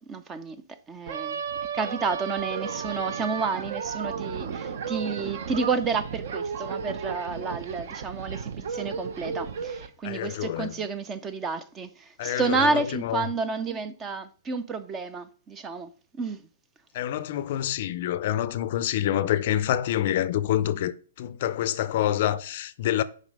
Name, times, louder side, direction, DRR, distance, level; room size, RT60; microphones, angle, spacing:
voice 1, 0.0-1.4 1.7-16.4, right 4 dB, 15° right, 0.5 m, -30 dB
sound 1, 1.1-9.9, right 6 dB, 50° right, 0.9 m, -34 dB
voice 2, 10.0-10.8 12.2-13.3 16.9-23.0, left 12 dB, 40° left, 0.5 m, -27 dB
7.4 x 5.4 x 5.1 m
hypercardioid pair, 170°, 0 cm